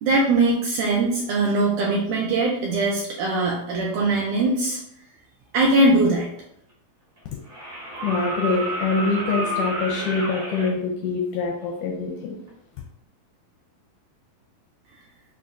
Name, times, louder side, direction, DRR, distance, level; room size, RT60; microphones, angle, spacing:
voice 1, 0.0-4.8 5.5-6.3, right 2 dB, 85° right, -2 dB, 1.8 m, -21 dB
sound 1, 6.4-6.5 7.5-10.7 12.5-12.6, right 1 dB, 60° right, 0.7 m, -30 dB
voice 2, 8.0-12.4, left 4 dB, 80° left, 1 dB, 1.9 m, -25 dB
6.8 x 2.3 x 2.5 m, 0.72 s
omnidirectional pair, 4.0 m